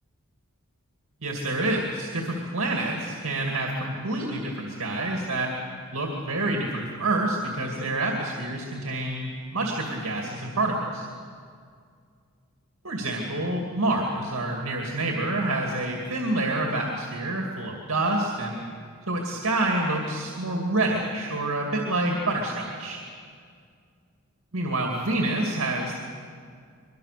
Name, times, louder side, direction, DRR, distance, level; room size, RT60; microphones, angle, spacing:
voice 1, 1.2-5.5 5.9-11.1 12.8-18.7 19.1-23.0 24.5-25.9, right 2 dB, 65° right, 1 dB, 2.4 m, -27 dB
23.0 x 23.0 x 6.8 m, 2.2 s
head